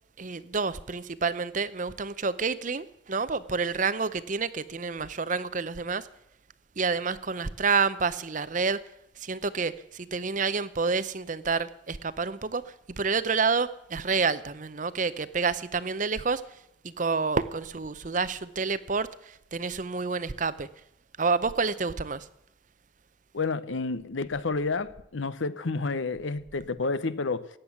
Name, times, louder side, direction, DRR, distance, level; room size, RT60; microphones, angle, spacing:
voice 1, 0.2-6.1 6.8-8.8 9.2-12.6 13.0-16.4 16.8-20.7 21.2-22.3, right 4 dB, 40° right, 0.7 m, -28 dB
voice 2, 23.3-27.5, left 3 dB, 75° left, 0.8 m, -30 dB
14.5 x 9.6 x 7.1 m
head